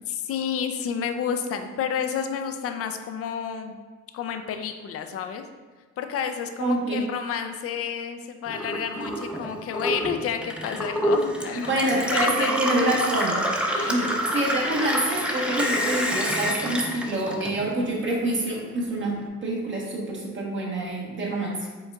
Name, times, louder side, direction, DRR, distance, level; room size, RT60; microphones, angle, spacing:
voice 1, 0.1-3.8 4.1-5.4 6.0-11.8 12.1-12.8 13.8-14.1, left 7 dB, 50° left, 7 dB, 0.4 m, -30 dB
voice 2, 6.6-7.0 11.7-13.4 13.8-14.1 14.3-21.7, right 1 dB, 40° right, -3 dB, 1.1 m, -26 dB
Gurgling / Water tap faucet / Sink (filling or washing), 8.5-18.0 18.3-19.2, equal, 5° right, 0.5 m, -28 dB
5.2 x 3.6 x 2.3 m, 1.4 s
cardioid pair, 90°, 30 cm